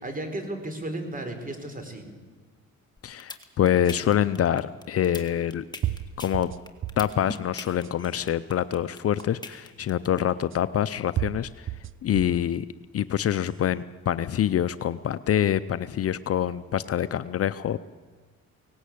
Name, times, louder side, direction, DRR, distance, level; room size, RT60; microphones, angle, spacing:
voice 1, 0.0-2.0, right 1 dB, 30° right, 6 dB, 3.9 m, -34 dB
voice 2, 3.0-5.7 6.2-6.5 7.0-11.7 12.0-12.7 12.9-17.8, left 10 dB, 50° left, 14 dB, 0.6 m, -25 dB
sound 1, 3.0-10.2, left 3 dB, 15° left, 2.0 m, -40 dB
sound 2, 3.8-3.9 5.2-5.3 5.8-7.1 7.7-8.2 9.2-9.3 10.5-10.6 11.2-12.5 13.0-13.5, right 12 dB, 45° right, 0.5 m, -33 dB
18.0 x 17.5 x 8.5 m, 1.4 s
cardioid pair, 90°, 30 cm